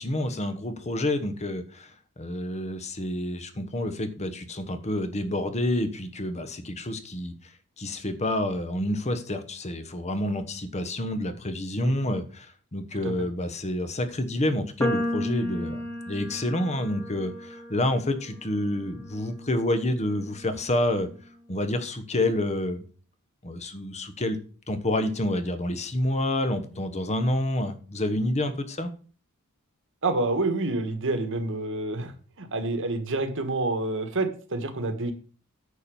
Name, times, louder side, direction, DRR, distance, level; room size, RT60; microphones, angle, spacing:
voice 1, 0.0-1.9 2.2-7.3 7.8-21.1 21.5-22.8 23.4-24.4 24.7-28.9, left 1 dB, 30° left, 9 dB, 1.1 m, -28 dB
sound 1, 14.8-21.1, equal, 10° left, 1.6 m, -35 dB
voice 2, 30.0-32.1 32.4-35.1, right 2 dB, 60° right, 8 dB, 1.5 m, -28 dB
9.6 x 4.4 x 7.0 m, 0.39 s
head